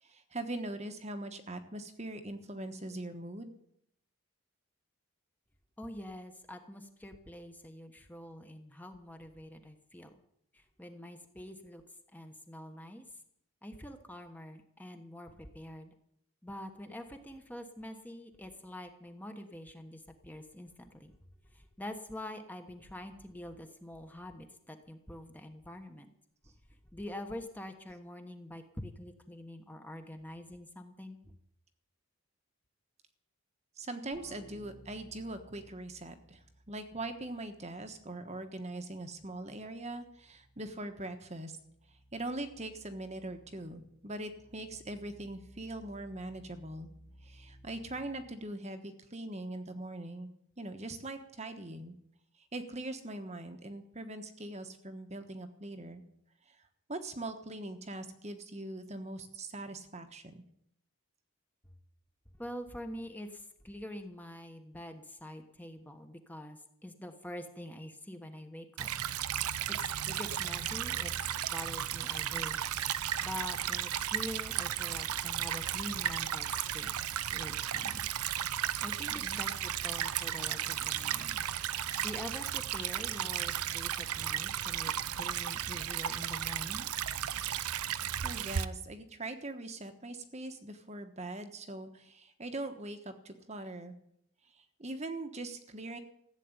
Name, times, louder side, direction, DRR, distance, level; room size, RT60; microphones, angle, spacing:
voice 1, 0.0-3.5 33.8-41.6 42.1-46.9 47.2-50.3 50.6-51.9 52.5-56.0 56.5-56.6 56.9-60.4 79.1-79.4 88.2-94.0 94.5-96.0, right 2 dB, 30° right, 7 dB, 1.2 m, -42 dB
voice 2, 5.8-10.2 10.5-11.8 12.1-13.2 13.6-16.0 16.4-21.2 21.4-26.1 26.7-31.3 62.4-68.9 69.7-72.6 73.2-76.9 77.2-78.1 78.8-81.5 82.0-87.0, left 1 dB, 5° left, 6 dB, 1.1 m, -45 dB
sound 1, 34.1-38.5 38.8-48.4, equal, 50° left, 1.9 m, -59 dB
Stream / Trickle dribble, 68.8-88.6, right 10 dB, 85° right, 0.7 m, -34 dB
15.0 x 8.4 x 9.7 m, 0.73 s
head